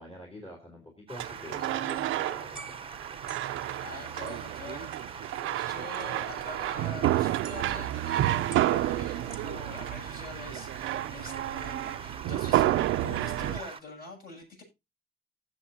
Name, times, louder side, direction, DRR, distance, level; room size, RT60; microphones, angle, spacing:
voice 1, 0.0-2.7, left 1 dB, 30° left, 1 dB, 3.4 m, -45 dB
sound 1, 1.1-3.7 4.3-4.6 5.9-6.0 7.4-8.0 8.5-9.4, right 3 dB, 5° right, 1.4 m, -49 dB
Stream, 1.1-13.8, right 5 dB, 30° right, 0.8 m, -43 dB
sound 2, 1.2-13.6, right 14 dB, 85° right, 0.5 m, -30 dB
voice 2, 3.8-4.9 5.4-14.6, left 3 dB, 50° left, 1 dB, 7.3 m, -45 dB
15.5 x 7.5 x 2.8 m, 0.24 s
cardioid pair, 90°, 20 cm